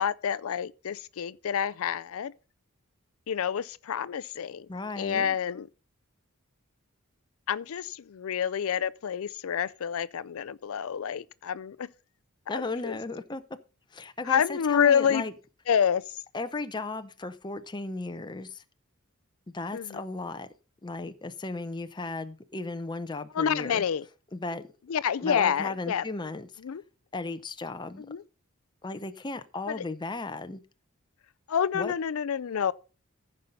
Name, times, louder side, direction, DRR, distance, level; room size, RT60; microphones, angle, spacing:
voice 1, 0.0-2.3 3.3-4.7 5.0-5.7 7.5-11.9 12.5-13.0 14.3-15.2 15.7-16.2 19.7-20.0 23.3-24.0 24.9-26.0 26.6-26.8 28.1-28.2 29.7-29.8 31.5-32.7, left 8 dB, 65° left, 0.4 m, -28 dB
voice 2, 4.7-5.4 12.5-13.4 13.9-15.3 16.3-18.6 19.5-20.5 20.8-23.8 24.3-24.6 25.2-26.5 27.1-28.1 28.8-30.6 31.7-31.9, left 3 dB, 20° left, 0.6 m, -35 dB
14.5 x 5.5 x 5.4 m
head